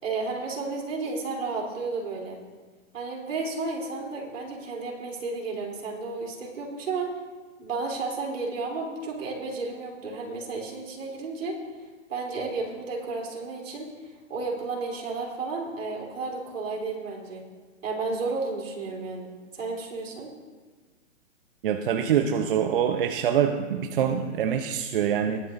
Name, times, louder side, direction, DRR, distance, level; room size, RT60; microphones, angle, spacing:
voice 1, 0.0-2.4 2.9-7.1 7.6-11.6 12.1-17.4 17.8-20.3, right 3 dB, 70° right, -1 dB, 3.4 m, -32 dB
voice 2, 21.6-25.4, right 8 dB, 40° right, 6 dB, 0.7 m, -25 dB
20.5 x 9.3 x 2.6 m, 1.4 s
hypercardioid pair, 145°, 40 cm